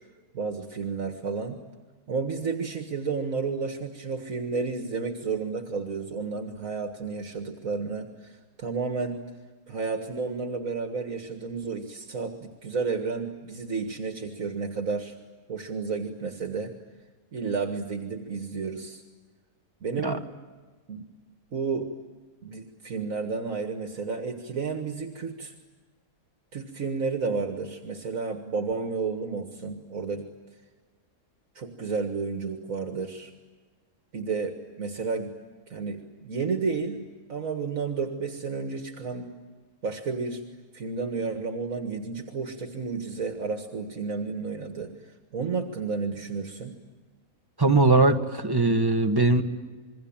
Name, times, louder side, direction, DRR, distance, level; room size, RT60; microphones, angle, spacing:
voice 1, 0.3-1.6 2.1-9.2 9.7-15.2 15.5-16.7 17.3-19.0 19.8-20.3 20.9-21.1 21.5-21.9 22.4-25.5 26.5-30.3 31.6-33.3 34.1-35.4 35.7-39.3 39.8-40.4 40.7-46.8, right 4 dB, 70° right, 5 dB, 2.1 m, -31 dB
voice 2, 47.6-49.4, right 3 dB, 15° right, 5 dB, 1.6 m, -20 dB
27.0 x 22.5 x 8.8 m, 1.4 s
omnidirectional pair, 1.5 m